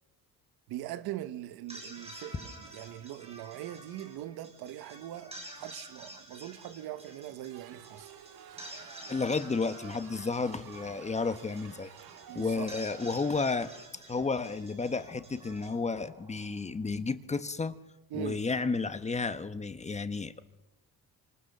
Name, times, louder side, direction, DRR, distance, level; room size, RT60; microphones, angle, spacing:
voice 1, 0.7-8.1 12.3-12.7 18.1-18.4, right 13 dB, 90° right, 1.4 m, -41 dB
sound 1, 1.5-16.8, right 1 dB, 15° right, 6.8 m, -50 dB
sound 2, 7.5-13.9, right 9 dB, 75° right, 2.1 m, -51 dB
voice 2, 9.1-11.9 12.3-13.7 14.1-17.7 18.1-20.4, left 4 dB, 20° left, 1.1 m, -32 dB
28.0 x 25.5 x 6.7 m
cardioid pair, 140°, 37 cm